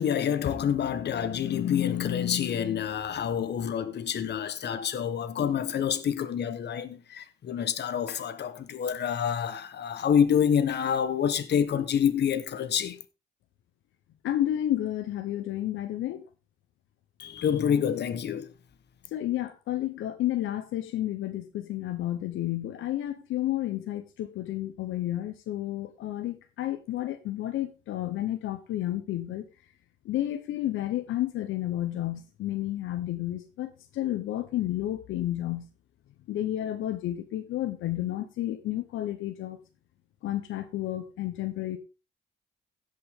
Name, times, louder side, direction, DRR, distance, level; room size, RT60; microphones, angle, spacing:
voice 1, 0.0-13.0 17.2-18.5, left 8 dB, 60° left, 1.3 m, -27 dB
voice 2, 14.2-16.2 19.1-29.4 30.0-35.7 36.3-39.6 40.2-41.8, left 13 dB, 80° left, 1.0 m, -31 dB
16.5 x 5.5 x 3.7 m
cardioid pair, 90°, 20 cm